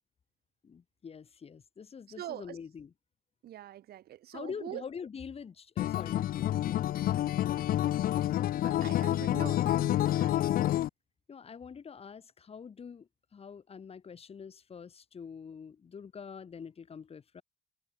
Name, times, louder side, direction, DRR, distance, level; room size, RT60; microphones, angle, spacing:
voice 1, 0.6-2.9 4.3-6.9 11.3-17.4, left 6 dB, 35° left, 5.3 m, -45 dB
voice 2, 2.2-2.6 3.4-4.8 8.6-10.4, right 13 dB, 65° right, 6.5 m, -43 dB
Acoustic guitar, 5.8-10.9, left 13 dB, 60° left, 0.7 m, -28 dB
cardioid pair, 110°, 17 cm